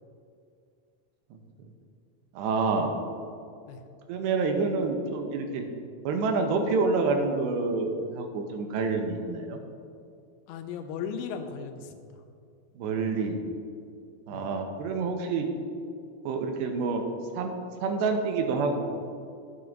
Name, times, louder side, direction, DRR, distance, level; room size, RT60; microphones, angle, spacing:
voice 1, 2.3-2.9 4.1-5.7 6.1-9.6 12.8-13.4 14.3-15.5 16.3-17.1 17.4-17.5 17.8-18.8, right 4 dB, 85° right, 4 dB, 2.8 m, -27 dB
voice 2, 10.5-12.2 14.3-14.5, left 6 dB, 85° left, 6 dB, 2.9 m, -37 dB
11.0 x 9.1 x 2.6 m, 2.4 s
omnidirectional pair, 5.1 m